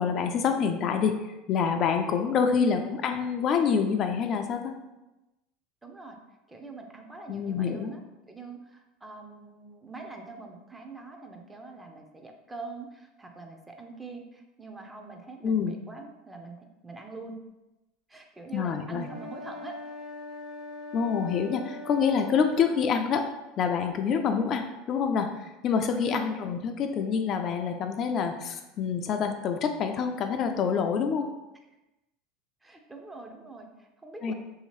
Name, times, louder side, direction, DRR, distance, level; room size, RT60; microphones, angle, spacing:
voice 1, 0.0-4.7 7.3-7.9 15.4-15.7 18.5-19.1 20.9-23.3 23.6-31.3 34.2-34.3, left 6 dB, 45° left, 5 dB, 0.3 m, -27 dB
voice 2, 5.8-6.2 6.5-8.0 8.3-17.4 18.1-19.8 26.1-26.5 32.6-34.3, right 3 dB, 15° right, 3 dB, 0.5 m, -44 dB
sound 1, 19.0-23.0, left 2 dB, 40° right, 0.9 m, -41 dB
3.1 x 2.7 x 3.0 m, 1.0 s
supercardioid pair, 95°, 0 cm